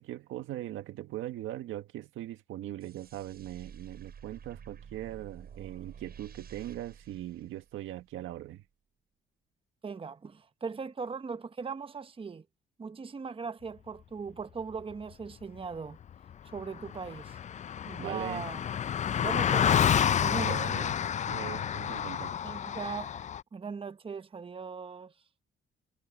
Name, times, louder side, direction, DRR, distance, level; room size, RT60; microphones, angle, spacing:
voice 1, 0.0-8.6 18.0-18.4 20.3-21.0 21.3-22.3, right 14 dB, 90° right, 1.6 m, -40 dB
sound 1, 2.8-8.1, right 7 dB, 50° right, 6.6 m, -50 dB
voice 2, 9.8-12.4 12.8-16.0 16.5-17.4 17.9-18.6 19.2-20.6 22.4-23.1 23.5-25.1, right 5 dB, 25° right, 0.9 m, -39 dB
Car passing by, 16.3-16.4 16.6-23.4, left 9 dB, 35° left, 0.4 m, -29 dB
cardioid pair, 90°, 20 cm